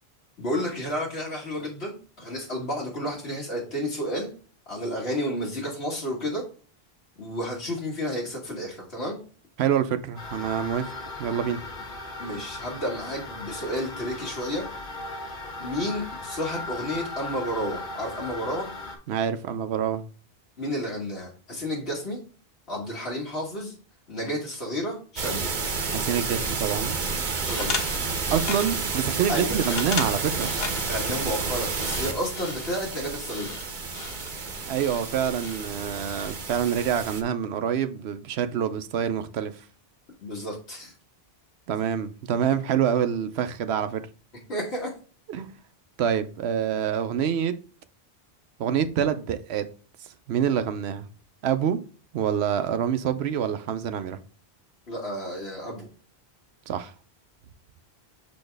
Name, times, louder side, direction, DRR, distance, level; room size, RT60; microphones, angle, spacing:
voice 1, 0.4-4.3 4.7-6.4 7.2-9.2 12.2-14.7 15.6-18.7 20.6-22.2 22.7-23.8 24.1-25.5 27.5-28.0 29.3-29.6 30.9-33.5 40.2-40.9 44.5-44.9 54.9-55.9, equal, 90° left, 1.8 m, -31 dB
voice 2, 9.6-10.9 11.2-11.6 19.1-20.0 25.9-27.0 28.3-30.5 34.7-39.5 41.7-44.0 45.3-45.5 46.0-47.5 48.6-49.7 50.3-51.1 51.4-51.8 52.1-54.2 56.7-56.9, right 8 dB, 85° right, 0.9 m, -26 dB
sound 1, 10.2-19.0, left 2 dB, 55° left, 1.4 m, -37 dB
sound 2, 25.2-37.2, right 4 dB, 50° right, 0.9 m, -30 dB
sound 3, 27.0-36.9, left 5 dB, 70° left, 1.1 m, -38 dB
6.8 x 4.2 x 3.3 m
omnidirectional pair, 1.1 m